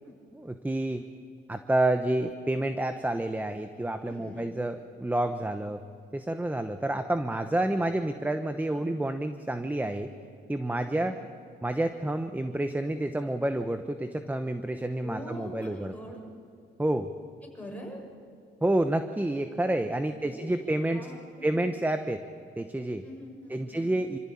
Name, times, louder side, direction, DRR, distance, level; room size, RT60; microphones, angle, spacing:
voice 1, 0.3-1.0 1.5-5.8 6.1-10.1 10.5-11.1 11.6-15.9 16.8-17.1 18.6-21.0 21.4-22.2 22.6-23.0 23.5-24.2, right 1 dB, 10° right, 8 dB, 1.0 m, -29 dB
voice 2, 4.1-4.5 8.7-8.9 10.8-11.1 15.0-16.2 17.5-18.0 20.1-21.7 23.0-23.9, equal, 5° left, -1 dB, 6.7 m, -44 dB
26.0 x 15.0 x 8.7 m, 2.4 s
cardioid pair, 90°, 20 cm